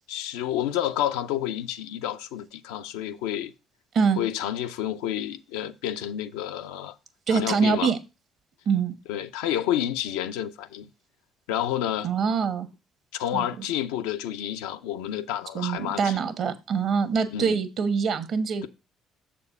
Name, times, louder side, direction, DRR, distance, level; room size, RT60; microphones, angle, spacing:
voice 1, 0.1-3.5 4.2-7.0 7.3-7.9 9.1-10.9 11.5-12.1 13.1-16.2 17.3-17.6, left 11 dB, 80° left, 0.5 m, -29 dB
voice 2, 7.3-8.0 8.7-8.9 12.0-12.7 13.3-13.6 15.5-18.7, right 6 dB, 60° right, 1.0 m, -24 dB
7.0 x 4.3 x 5.3 m
hypercardioid pair, 50°, 0 cm